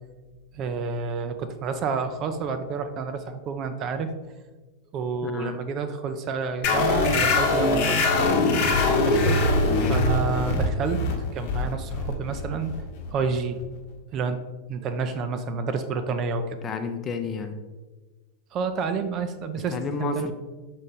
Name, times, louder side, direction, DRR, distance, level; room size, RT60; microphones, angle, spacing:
voice 1, 0.5-4.1 4.9-8.1 9.0-9.5 9.9-11.0 11.3-12.7 13.1-13.6 14.1-14.4 14.7-16.6 18.5-20.3, right 5 dB, 35° right, 9 dB, 0.5 m, -29 dB
voice 2, 5.2-5.6 9.8-10.1 16.6-17.6 19.6-20.3, left 4 dB, 25° left, 7 dB, 0.6 m, -31 dB
sound 1, 6.6-13.8, left 2 dB, 50° left, 1.0 m, -23 dB
6.2 x 4.1 x 4.0 m, 1.3 s
figure-of-eight pair, 90°, 0 cm